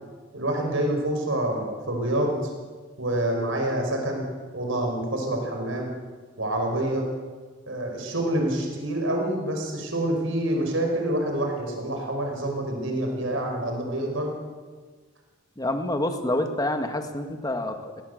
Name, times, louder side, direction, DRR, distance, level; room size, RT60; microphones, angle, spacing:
voice 1, 0.3-2.4 3.0-4.2 4.5-5.9 6.4-7.1 7.7-14.3, right 1 dB, 85° right, 2 dB, 5.2 m, -27 dB
voice 2, 15.6-18.0, left 1 dB, 20° left, 6 dB, 1.8 m, -27 dB
20.0 x 17.5 x 8.0 m, 1.4 s
head